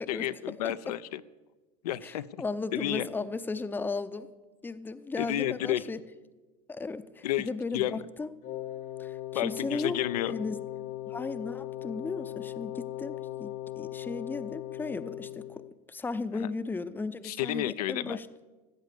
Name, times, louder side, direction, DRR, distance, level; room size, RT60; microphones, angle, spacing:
voice 1, 0.1-1.2 1.8-2.4 2.7-3.1 5.2-5.9 7.2-8.1 9.3-10.3 16.3-16.5 17.2-18.2, left 13 dB, 80° left, 13 dB, 0.5 m, -31 dB
voice 2, 2.0-4.3 4.6-6.0 6.7-8.3 9.0-10.0 10.3-10.6 11.1-13.5 13.8-15.6 15.9-18.3, left 3 dB, 10° left, 13 dB, 0.6 m, -35 dB
Wind instrument woodwind instrument, 8.4-15.7, left 13 dB, 45° left, 1.0 m, -38 dB
14.5 x 8.2 x 6.7 m, 1.2 s
hypercardioid pair, 100°, 20 cm